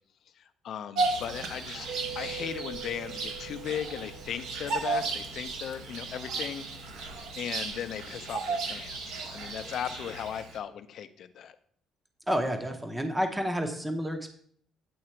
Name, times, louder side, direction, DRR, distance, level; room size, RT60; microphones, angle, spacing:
voice 1, 0.3-1.9 2.1-6.6 7.4-11.6, left 9 dB, 55° left, 11 dB, 0.5 m, -37 dB
Bird vocalization bird call bird song, 1.0-10.6, right 3 dB, 80° right, 1.1 m, -35 dB
Mallet percussion, 1.9-5.3, right 9 dB, 60° right, 0.5 m, -43 dB
voice 2, 12.3-14.3, equal, 10° right, 5 dB, 0.7 m, -30 dB
8.6 x 3.9 x 4.4 m, 0.63 s
cardioid pair, 145°, 0 cm